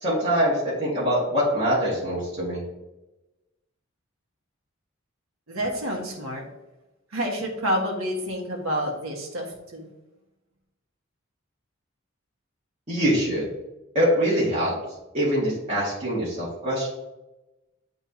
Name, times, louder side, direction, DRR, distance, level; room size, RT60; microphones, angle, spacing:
voice 1, 0.0-0.5 0.8-2.6 12.9-13.5 13.9-14.7 15.1-16.9, equal, 30° right, -10 dB, 1.9 m, -23 dB
voice 2, 5.5-6.4 7.1-9.9, equal, 90° right, 0 dB, 1.5 m, -28 dB
10.0 x 3.6 x 2.8 m, 1.0 s
head